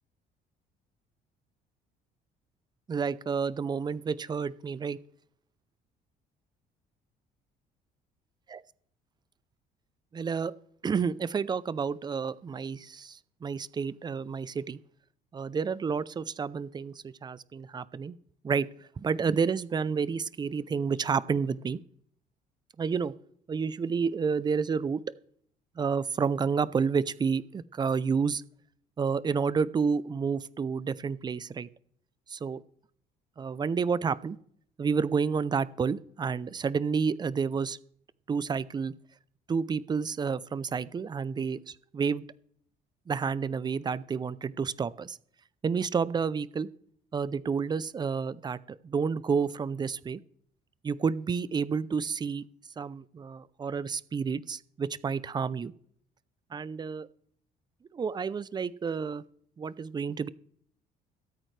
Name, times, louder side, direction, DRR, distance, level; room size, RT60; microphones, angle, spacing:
voice 1, 2.9-5.0 10.1-10.5 10.8-14.8 15.3-18.2 18.4-18.7 19.0-21.8 22.8-23.1 23.5-25.0 25.8-28.4 29.0-31.7 32.3-32.6 33.4-34.4 34.8-37.8 38.3-38.9 39.5-42.2 43.1-45.2 45.6-46.7 47.1-48.6 48.8-50.2 50.8-52.4 52.8-55.7 56.5-57.1 57.9-59.2 59.6-60.3, right 5 dB, 25° right, 18 dB, 0.5 m, -30 dB
22.5 x 8.8 x 3.3 m, 0.64 s
cardioid pair, 110°, 17 cm